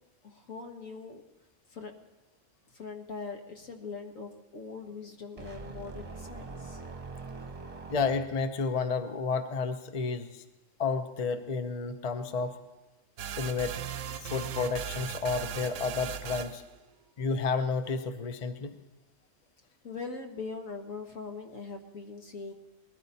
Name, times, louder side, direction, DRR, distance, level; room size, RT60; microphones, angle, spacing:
voice 1, 0.2-1.2 1.7-1.9 2.7-6.8 19.8-22.5, left 4 dB, 75° left, 4 dB, 1.8 m, -41 dB
sound 1, 5.4-8.6, right 4 dB, 30° right, 1.1 m, -43 dB
voice 2, 7.9-10.4 10.8-12.6 13.4-13.7 14.2-16.6 17.2-18.8, left 4 dB, 35° left, 9 dB, 0.8 m, -31 dB
sound 2, 13.2-16.7, right 9 dB, 70° right, 0.9 m, -38 dB
20.0 x 14.0 x 4.2 m, 1.1 s
omnidirectional pair, 1.4 m